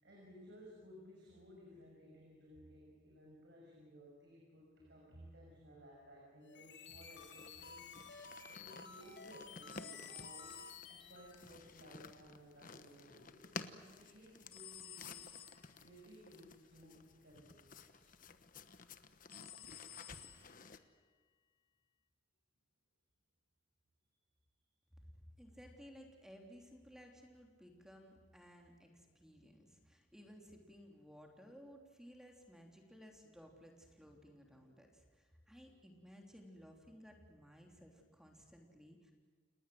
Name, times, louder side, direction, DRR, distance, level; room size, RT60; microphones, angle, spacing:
voice 1, 0.0-10.5 10.9-18.1, equal, 60° right, -2 dB, 6.2 m, -59 dB
sound 1, 6.4-11.4, left 4 dB, 70° left, 2.5 m, -54 dB
sound 2, 7.2-20.8, left 4 dB, 45° left, 1.2 m, -54 dB
sound 3, 9.7-11.3 14.5-15.8 19.3-20.7, left 10 dB, 30° left, 1.7 m, -53 dB
voice 2, 25.2-39.1, equal, 5° right, 2 dB, 3.1 m, -58 dB
30.0 x 19.5 x 7.8 m, 1.5 s
head